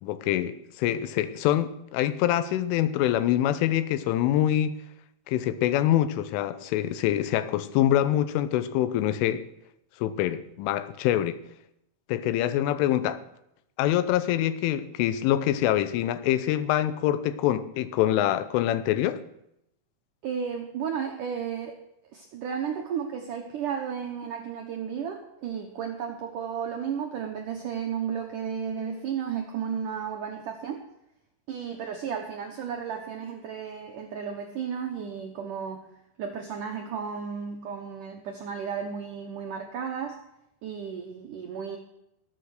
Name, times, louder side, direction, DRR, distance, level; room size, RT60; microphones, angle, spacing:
voice 1, 0.0-4.8 5.3-9.4 10.0-11.4 12.1-13.2 13.8-19.2, left 12 dB, 90° left, 3.3 m, -25 dB
voice 2, 20.2-21.8 22.1-30.8 31.5-35.8 36.2-40.2 40.6-41.8, right 7 dB, 85° right, 1.8 m, -33 dB
19.5 x 8.2 x 6.5 m
omnidirectional pair, 5.5 m